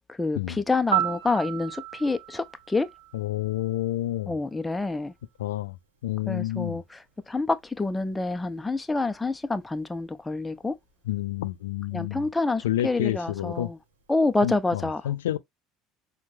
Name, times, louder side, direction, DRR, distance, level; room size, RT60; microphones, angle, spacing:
voice 1, 0.1-2.9 4.3-5.1 6.3-7.0 7.3-10.8 11.9-13.8 14.1-15.0, left 3 dB, 15° left, 0.5 m, -27 dB
Piano, 0.9-3.8 12.0-12.2, right 12 dB, 75° right, 0.8 m, -32 dB
voice 2, 3.1-4.4 5.4-5.8 6.0-6.8 11.0-12.3 12.6-13.7 14.4-15.4, left 13 dB, 70° left, 0.4 m, -29 dB
5.7 x 2.2 x 2.6 m
figure-of-eight pair, 65°, 0 cm